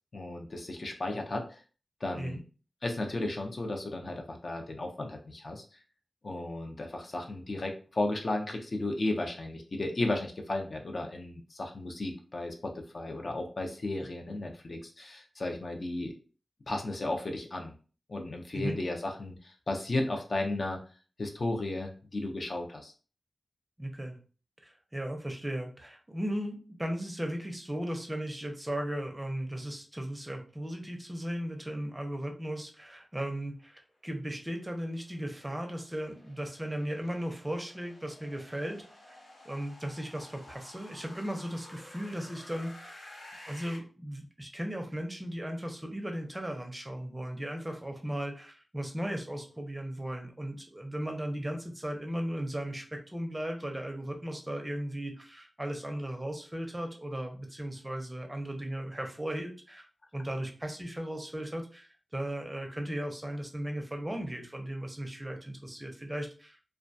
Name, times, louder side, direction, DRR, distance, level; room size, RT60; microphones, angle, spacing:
voice 1, 0.1-1.6 2.0-2.4 2.8-5.6 6.2-16.1 16.7-17.7 18.1-20.8 21.2-22.9, left 2 dB, 55° left, 3 dB, 0.5 m, -34 dB
voice 2, 23.8-24.2 24.6-39.2 39.4-43.1 43.5-59.9 60.1-66.6, right 1 dB, 15° right, 3 dB, 0.5 m, -36 dB
sound 1, 34.2-43.8, left 1 dB, 80° left, 1.0 m, -52 dB
2.2 x 2.1 x 2.5 m, 0.37 s
wide cardioid pair, 75°, 0 cm